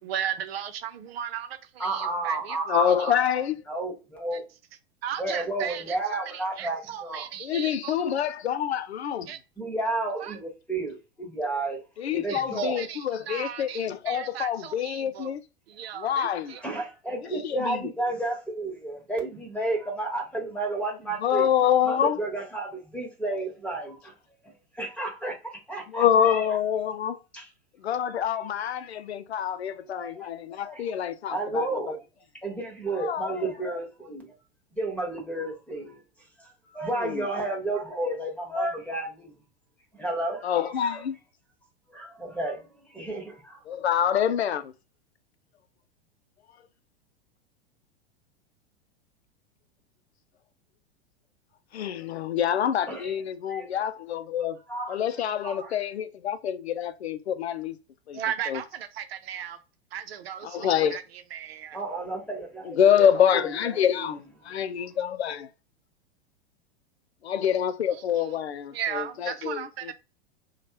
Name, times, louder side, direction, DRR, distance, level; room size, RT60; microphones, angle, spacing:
voice 1, 0.0-2.6 5.0-6.0 6.3-8.0 9.3-9.4 10.2-10.4 12.3-15.3 15.7-16.8 58.1-59.6 59.9-61.8 67.9-68.4 68.7-69.9, right 9 dB, 70° right, 0.7 m, -36 dB
voice 2, 1.8-3.2 3.7-4.4 5.2-7.3 9.6-11.8 12.1-12.8 16.6-21.5 21.8-24.2 24.7-26.6 27.3-27.5 29.9-30.3 30.6-30.8 31.3-32.0 32.4-34.3 34.7-36.0 36.4-39.3 40.0-41.0 41.9-43.6 52.9-53.1 53.5-53.7 54.7-55.0 55.4-55.8 61.7-63.1 63.3-64.1, right 2 dB, 5° left, 1.2 m, -32 dB
voice 3, 2.7-3.6 7.4-9.2 12.0-15.4 16.0-16.6 17.4-17.9 21.2-22.2 25.9-27.2 27.8-31.8 33.0-33.7 37.0-37.3 40.4-41.2 43.7-44.7 51.7-54.6 54.9-57.8 58.1-58.2 58.5-58.6 60.4-61.0 62.6-65.5 67.2-69.9, left 9 dB, 80° left, 0.5 m, -26 dB
3.1 x 2.3 x 2.9 m
hypercardioid pair, 100°, 32 cm